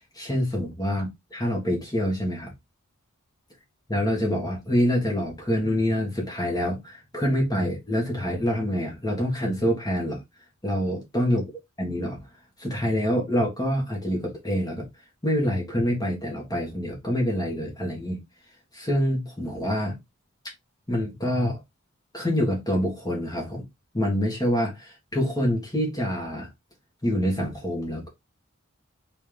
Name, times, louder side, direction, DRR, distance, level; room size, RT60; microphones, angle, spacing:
voice 1, 0.1-1.1 1.3-2.5 3.9-10.2 10.6-11.4 11.8-12.3 12.6-14.9 15.2-18.2 18.7-20.0 20.9-21.6 22.1-23.6 23.9-26.5 27.0-28.1, equal, 20° left, 1.7 m, -26 dB
4.0 x 3.8 x 3.4 m
head